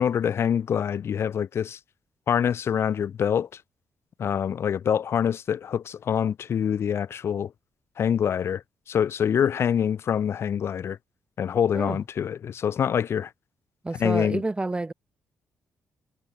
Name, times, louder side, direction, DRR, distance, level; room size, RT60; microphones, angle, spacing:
voice 1, 0.0-1.8 2.3-3.6 4.2-7.5 8.0-8.6 8.9-11.0 11.4-13.3 14.0-14.4, left 8 dB, 60° left, 0.8 m, -25 dB
voice 2, 13.8-14.9, right 2 dB, 20° right, 1.6 m, -29 dB
cardioid pair, 70°, 5 cm